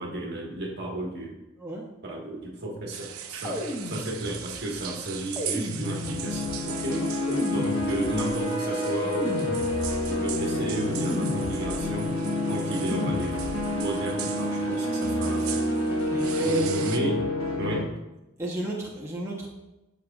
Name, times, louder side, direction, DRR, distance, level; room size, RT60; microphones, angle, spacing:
voice 1, 0.0-1.4 2.0-7.2 7.5-9.8 10.0-12.2 12.5-15.6 16.4-17.2 17.6-17.9, right 1 dB, 50° right, -2 dB, 1.5 m, -33 dB
sound 1, 2.9-17.0, right 9 dB, 85° right, 0.6 m, -40 dB
sound 2, 3.4-4.7 5.4-6.5 7.3-8.4 9.2-10.2 11.1-12.0 12.9-13.8, left 1 dB, 15° left, 1.1 m, -35 dB
sound 3, 5.8-17.8, left 1 dB, 85° left, 1.3 m, -28 dB
voice 2, 6.9-7.5 16.1-16.7 18.4-19.5, right 2 dB, 15° right, -5 dB, 0.9 m, -31 dB
13.5 x 5.0 x 2.4 m, 0.98 s
head